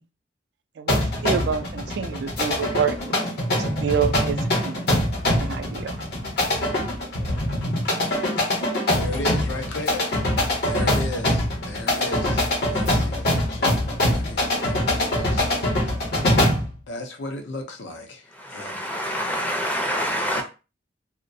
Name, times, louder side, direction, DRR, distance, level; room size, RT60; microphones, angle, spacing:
voice 1, 0.8-3.0 3.6-4.8 5.4-6.0, right 7 dB, 65° right, 0.3 m, -27 dB
sound 1, 0.9-16.7, left 1 dB, 60° left, 0.8 m, -23 dB
voice 2, 8.9-10.1 10.6-15.6 16.0-16.1 16.9-18.9 20.3-20.4, left 2 dB, 80° left, 0.5 m, -36 dB
voice 3, 18.4-20.4, equal, 10° left, 0.5 m, -26 dB
2.3 x 2.1 x 2.6 m
head